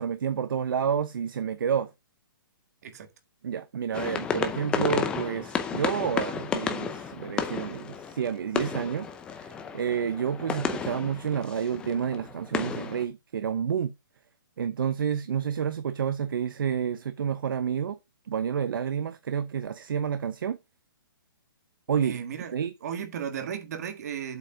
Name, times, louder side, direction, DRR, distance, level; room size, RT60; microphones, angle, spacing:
voice 1, 0.0-1.9 3.4-9.1 9.4-13.9 14.6-18.0 18.3-20.6 21.9-22.2 22.5-22.7, right 8 dB, 65° right, 0.8 m, -29 dB
sound 1, 3.9-13.0, left 6 dB, 10° left, 0.6 m, -32 dB
voice 2, 22.0-22.5 22.8-24.4, right 8 dB, 45° right, 1.7 m, -35 dB
7.9 x 5.3 x 5.0 m
hypercardioid pair, 170°, 12 cm